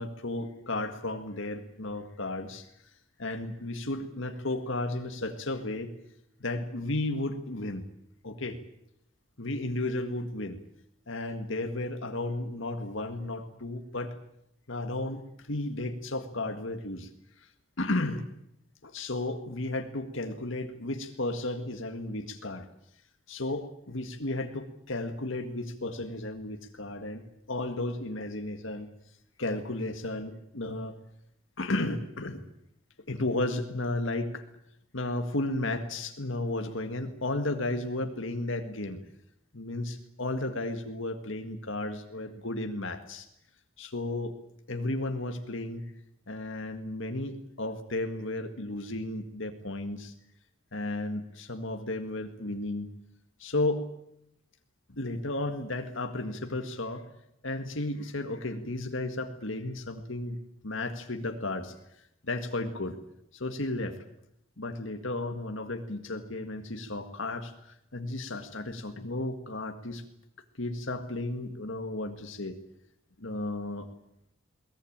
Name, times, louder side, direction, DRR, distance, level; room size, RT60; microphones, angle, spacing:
voice 1, 0.0-2.7 3.2-5.9 6.4-7.9 8.2-8.6 9.4-10.6 11.1-14.1 14.7-17.1 17.4-17.5 17.8-18.3 18.8-22.7 23.3-28.9 29.4-31.0 31.6-32.4 33.1-34.4 34.9-39.0 39.5-43.3 43.8-44.3 44.7-45.9 46.3-50.1 50.7-52.9 53.4-53.9 54.9-57.1 57.4-61.7 62.2-63.0 63.3-64.0 64.6-70.0 70.6-72.6 73.2-73.9, left 2 dB, 65° left, 6 dB, 1.9 m, -33 dB
22.0 x 19.5 x 8.8 m, 0.78 s
head